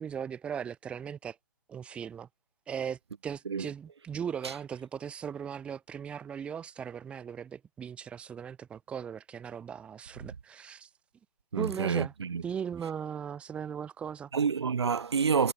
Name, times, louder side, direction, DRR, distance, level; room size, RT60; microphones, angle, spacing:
voice 1, 0.0-1.4 1.7-2.3 2.7-10.9 11.6-12.1 12.4-14.3, right 8 dB, 10° right, 1.2 m, -38 dB
voice 2, 11.5-12.4 14.3-15.5, right 6 dB, 80° right, 0.8 m, -28 dB
hypercardioid pair, 155°, 14 cm